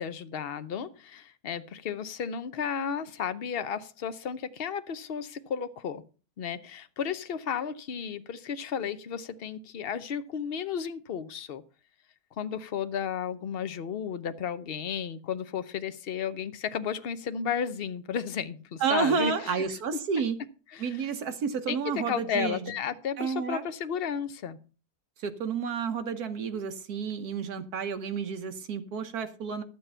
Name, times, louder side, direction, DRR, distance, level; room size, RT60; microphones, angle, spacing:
voice 1, 0.0-6.0 6.4-11.6 12.4-19.6 20.7-21.0 21.7-24.6, left 7 dB, 50° left, 0.7 m, -33 dB
voice 2, 18.8-20.4 20.8-22.7 23.2-23.6 25.2-29.6, right 6 dB, 70° right, 1.5 m, -30 dB
11.5 x 7.5 x 5.5 m
omnidirectional pair, 1.8 m